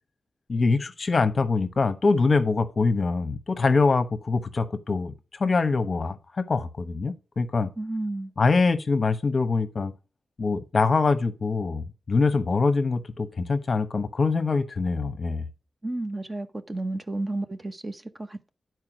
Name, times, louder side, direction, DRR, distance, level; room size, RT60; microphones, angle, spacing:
voice 1, 0.5-5.1 5.4-7.7 8.4-9.9 10.4-15.4, left 4 dB, 40° left, 0.9 m, -24 dB
voice 2, 7.8-8.3 15.8-18.5, right 2 dB, 20° right, 0.8 m, -32 dB
9.6 x 4.6 x 6.0 m
wide cardioid pair, 130°, 0 cm